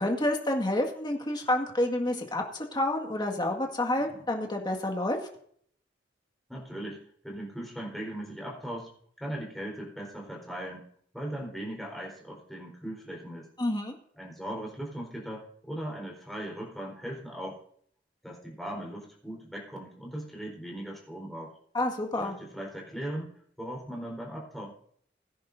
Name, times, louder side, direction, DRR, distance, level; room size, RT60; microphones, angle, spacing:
voice 1, 0.0-5.2 13.6-13.9 21.7-22.4, left 1 dB, 25° left, 2 dB, 1.9 m, -29 dB
voice 2, 6.5-8.9 9.2-10.9 11.1-13.5 14.2-17.6 18.2-21.5 22.2-23.3 23.6-24.7, right 1 dB, ahead, -3 dB, 4.2 m, -38 dB
21.5 x 10.0 x 2.7 m, 0.63 s
head